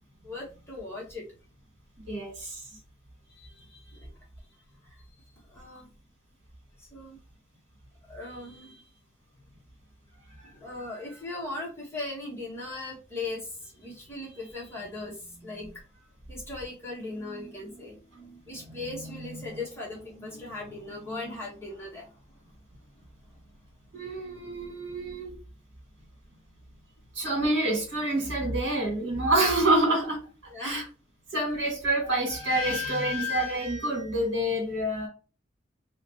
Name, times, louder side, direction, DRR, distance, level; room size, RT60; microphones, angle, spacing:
voice 1, 0.2-1.2 3.3-4.1 4.8-5.9 6.8-7.2 8.1-8.9 10.4-22.2 30.5-30.9, left 2 dB, 15° left, 1.4 m, -39 dB
voice 2, 2.1-2.6 23.9-25.3 27.1-30.2 30.6-30.8 31.3-35.1, right 1 dB, 70° right, 2.0 m, -27 dB
3.2 x 3.1 x 2.9 m
head